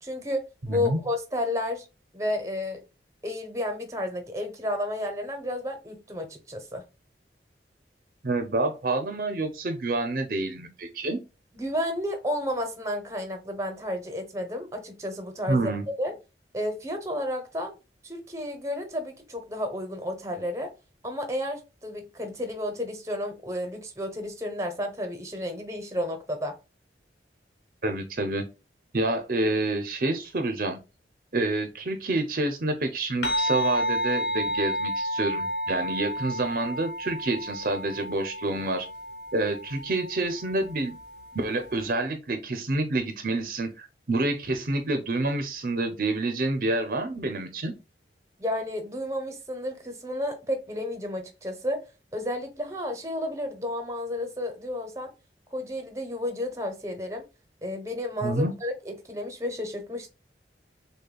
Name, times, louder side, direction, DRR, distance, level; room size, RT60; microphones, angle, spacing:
voice 1, 0.0-1.8 2.1-2.8 3.2-6.8 11.5-16.1 16.5-17.7 18.0-20.7 21.0-26.5 48.4-51.9 52.1-55.1 55.5-57.2 57.6-60.1, left 1 dB, 15° right, 0.8 m, -32 dB
voice 2, 0.7-1.0 8.2-11.2 15.5-15.9 27.8-28.5 28.9-30.8 31.3-38.9 39.3-41.0 41.3-47.7 58.2-58.5, right 2 dB, 50° right, 0.6 m, -28 dB
sound 1, 33.2-41.9, equal, 75° left, 1.2 m, -31 dB
6.5 x 2.2 x 2.3 m
head